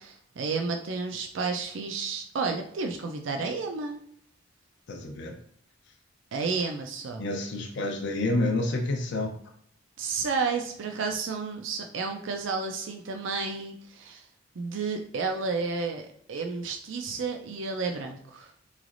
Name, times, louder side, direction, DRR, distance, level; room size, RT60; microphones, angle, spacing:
voice 1, 0.0-4.0 6.3-7.2 10.0-14.2 14.6-18.5, right 4 dB, 70° right, 4 dB, 0.4 m, -31 dB
voice 2, 4.9-5.3 7.2-9.3, left 2 dB, 65° left, 2 dB, 0.6 m, -28 dB
3.9 x 3.2 x 2.5 m, 0.62 s
head